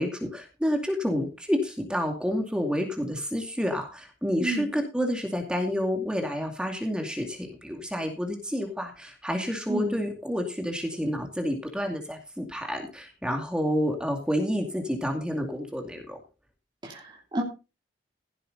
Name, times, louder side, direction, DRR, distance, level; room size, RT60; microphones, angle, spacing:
voice 1, 0.0-16.2, equal, 5° right, 3 dB, 2.4 m, -29 dB
voice 2, 16.8-17.4, right 1 dB, 25° right, -1 dB, 2.9 m, -31 dB
16.5 x 8.1 x 4.1 m, 0.30 s
head